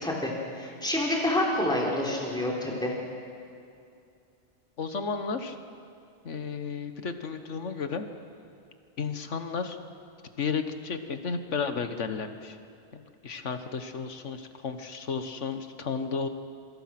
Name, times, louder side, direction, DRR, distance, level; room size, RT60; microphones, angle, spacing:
voice 1, 0.0-2.9, left 1 dB, 5° left, -3 dB, 3.7 m, -28 dB
voice 2, 4.8-5.6 6.2-8.1 9.0-9.8 10.4-12.6 12.9-16.3, left 5 dB, 85° left, 8 dB, 1.7 m, -33 dB
26.5 x 24.5 x 6.0 m, 2.5 s
omnidirectional pair, 1.2 m